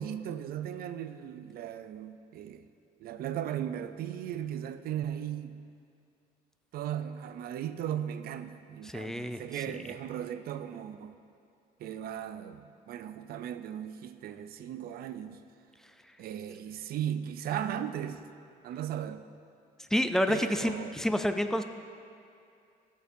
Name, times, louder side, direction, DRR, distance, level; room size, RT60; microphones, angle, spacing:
voice 1, 0.0-2.7 3.0-5.6 6.7-11.2 11.8-15.4 16.2-18.2 18.6-19.2 20.3-20.9, right 10 dB, 60° right, 11 dB, 0.5 m, -37 dB
voice 2, 8.8-9.4 19.9-21.6, equal, 5° left, 8 dB, 0.4 m, -28 dB
13.5 x 6.7 x 2.6 m, 2.5 s
cardioid pair, 110°, 17 cm